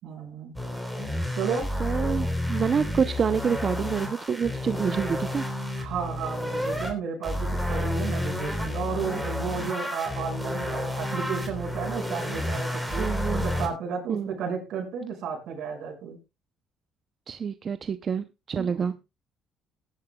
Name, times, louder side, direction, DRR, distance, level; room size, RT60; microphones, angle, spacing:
voice 1, 0.0-0.5 1.3-1.7 5.8-16.2 18.5-18.9, right 6 dB, 70° right, 2 dB, 5.9 m, -33 dB
sound 1, 0.5-6.9 7.2-13.7, left 1 dB, ahead, 3.5 m, -30 dB
voice 2, 1.8-5.5 13.0-13.5 14.1-14.3 17.3-19.0, right 6 dB, 40° right, 11 dB, 0.6 m, -27 dB
19.5 x 11.0 x 2.3 m, 0.26 s
cardioid pair, 110°, 0 cm